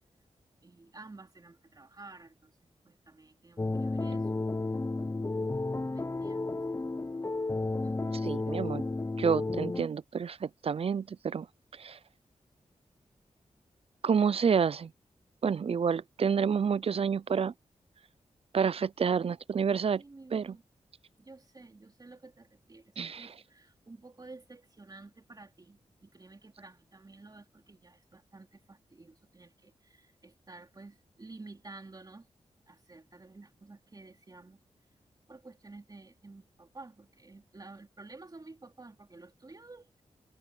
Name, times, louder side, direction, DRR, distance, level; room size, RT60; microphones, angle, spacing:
voice 1, 0.6-2.5 2.8-4.3 5.8-6.5 7.8-8.6 19.9-20.6 21.2-32.3 32.7-34.6 35.3-40.0, right 3 dB, 30° right, 3.3 m, -52 dB
sound 1, 3.6-9.8, left 2 dB, 25° left, 0.8 m, -32 dB
voice 2, 8.2-8.8 9.2-11.5 11.8-12.0 14.0-14.9 15.4-17.5 18.5-20.0 20.3-20.5 23.0-23.3, right 6 dB, 50° right, 0.5 m, -29 dB
wide cardioid pair, 80°, 12 cm